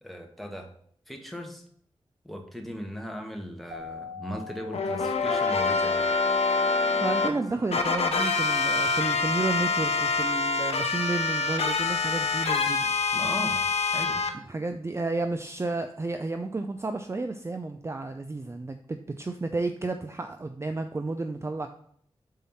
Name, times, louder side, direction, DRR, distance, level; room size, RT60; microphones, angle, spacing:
voice 1, 0.0-0.7 1.1-1.6 2.2-6.1 7.3-7.4 13.1-13.6 13.9-14.2, equal, ahead, 3 dB, 1.3 m, -38 dB
Keyboard (musical), 3.7-6.0, left 5 dB, 85° right, 1.5 m, -44 dB
sound 1, 4.7-7.3 7.7-14.3, left 4 dB, 85° left, 0.7 m, -26 dB
sound 2, 5.7-10.7, right 1 dB, 45° right, 2.5 m, -48 dB
voice 2, 7.0-12.8 14.3-21.7, right 3 dB, 25° right, 7 dB, 0.4 m, -32 dB
5.6 x 4.2 x 5.5 m, 0.63 s
wide cardioid pair, 65°, 10 cm